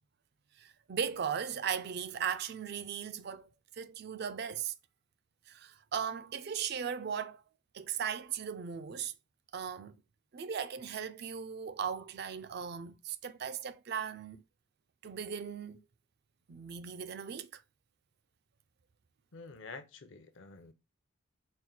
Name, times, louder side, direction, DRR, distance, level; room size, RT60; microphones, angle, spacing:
voice 1, 0.6-4.7 5.5-7.4 7.7-9.1 9.5-10.0 10.3-14.4 15.0-15.8 16.5-17.6, right 7 dB, 50° right, 0.4 m, -37 dB
voice 2, 19.3-20.7, left 4 dB, 60° left, 0.6 m, -48 dB
4.3 x 2.1 x 3.8 m
head